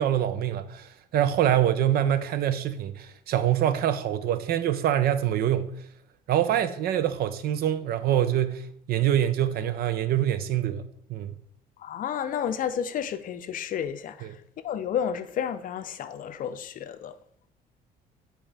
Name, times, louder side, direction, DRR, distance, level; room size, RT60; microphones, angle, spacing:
voice 1, 0.0-5.7 6.3-11.4 14.2-14.3, right 11 dB, 65° right, 0.6 m, -25 dB
voice 2, 11.8-14.3 14.6-17.1, left 8 dB, 55° left, 0.6 m, -31 dB
9.0 x 4.4 x 3.3 m
cardioid pair, 110°, 17 cm